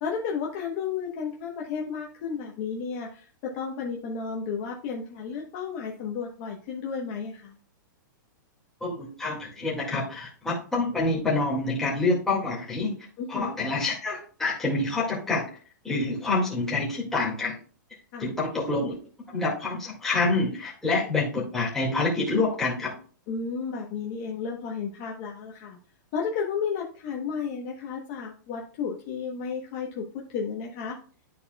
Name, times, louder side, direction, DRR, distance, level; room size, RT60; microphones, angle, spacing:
voice 1, 0.0-3.3 3.5-7.6 13.2-13.6 18.1-18.3 23.3-25.8 26.1-30.0 30.3-31.0, left 6 dB, 30° left, -1 dB, 0.9 m, -32 dB
voice 2, 8.8-12.9 13.3-15.4 15.8-17.6 18.2-18.9 19.3-22.9, left 3 dB, 5° left, -6 dB, 1.9 m, -27 dB
12.5 x 4.2 x 2.2 m, 0.40 s
hypercardioid pair, 170°, 11 cm